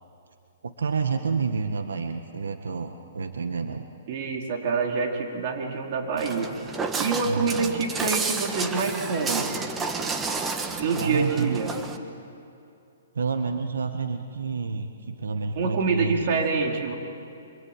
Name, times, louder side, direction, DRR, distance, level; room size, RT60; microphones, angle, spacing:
voice 1, 0.6-3.9 7.2-7.7 11.0-11.6 13.1-16.4, right 5 dB, 90° right, 6 dB, 1.6 m, -29 dB
voice 2, 4.1-6.5 7.0-9.5 10.8-11.7 15.6-16.9, right 4 dB, 45° right, 1 dB, 4.3 m, -26 dB
Walk footsteps, 6.2-12.0, right 4 dB, 15° right, 1.5 m, -31 dB
25.5 x 24.5 x 9.1 m, 2.7 s
hypercardioid pair, 150°, 0 cm